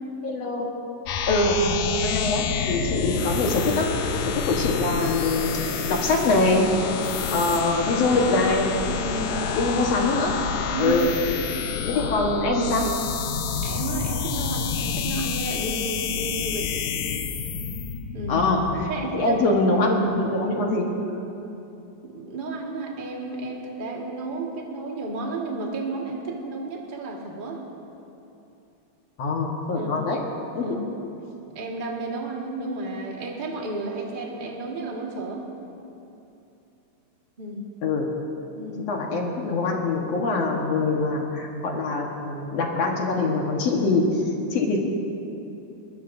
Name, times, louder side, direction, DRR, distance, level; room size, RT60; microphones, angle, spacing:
voice 1, 0.2-0.7 1.3-3.9 4.2-6.7 7.3-8.7 9.5-10.4 10.8-11.1 11.9-13.0 18.3-20.9 29.2-30.2 30.5-30.8 37.8-38.1 38.9-44.2 44.5-44.8, left 2 dB, 60° left, 0 dB, 2.4 m, -24 dB
sound 1, 1.1-18.9, left 6 dB, 80° left, 2.4 m, -28 dB
voice 2, 8.9-9.4 10.7-11.0 13.6-16.7 18.1-18.4 18.9-19.4 22.0-27.6 29.7-29.9 30.6-30.7 31.5-35.5 37.4-37.7 38.6-38.9, right 3 dB, 25° right, -2 dB, 1.2 m, -32 dB
21.5 x 21.0 x 2.7 m, 2.8 s
omnidirectional pair, 3.4 m